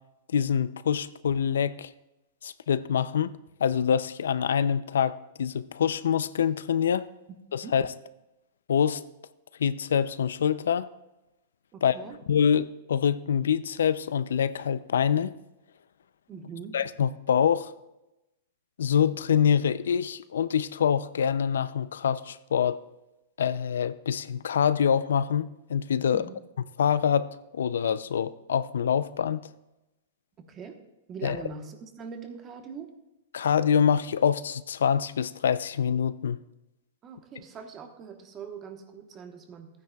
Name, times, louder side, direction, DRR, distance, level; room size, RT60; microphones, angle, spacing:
voice 1, 0.3-1.9 2.4-3.3 3.6-7.1 7.5-7.9 8.7-9.0 9.6-10.9 11.8-12.0 12.3-15.3 16.7-17.7 18.8-22.8 23.4-26.2 26.8-29.4 31.2-31.4 33.3-36.4, left 8 dB, 90° left, 0.4 m, -25 dB
voice 2, 11.7-12.2 16.3-16.8 26.1-26.3 30.4-30.8 31.1-32.9 37.0-39.7, right 6 dB, 25° right, 1.1 m, -42 dB
14.5 x 9.4 x 2.3 m
hypercardioid pair, 145°, 0 cm